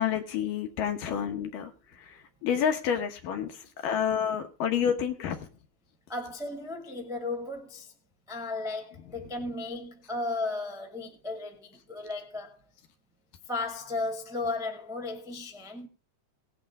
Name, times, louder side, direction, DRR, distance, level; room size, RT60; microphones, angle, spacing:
voice 1, 0.0-5.5 9.2-9.3, left 8 dB, 70° left, 2.5 m, -29 dB
voice 2, 6.1-7.9 8.3-12.6 13.5-15.9, left 2 dB, ahead, 0.9 m, -35 dB
18.0 x 8.9 x 3.6 m
omnidirectional pair, 4.4 m